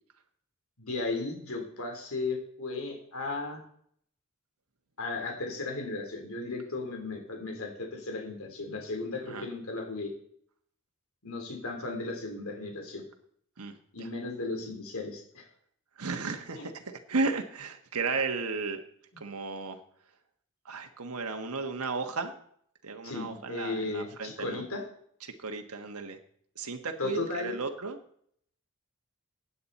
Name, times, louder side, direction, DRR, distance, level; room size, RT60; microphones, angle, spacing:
voice 1, 0.8-3.6 5.0-10.1 11.2-13.0 13.9-15.5 16.5-16.7 23.0-24.9 27.0-27.5, left 3 dB, 65° left, 2 dB, 3.6 m, -35 dB
voice 2, 13.6-14.1 16.0-18.8 19.2-19.8 20.6-22.3 22.8-24.6 25.2-26.2 26.5-28.0, right 4 dB, 75° right, 5 dB, 1.3 m, -34 dB
16.5 x 9.5 x 4.2 m, 0.64 s
head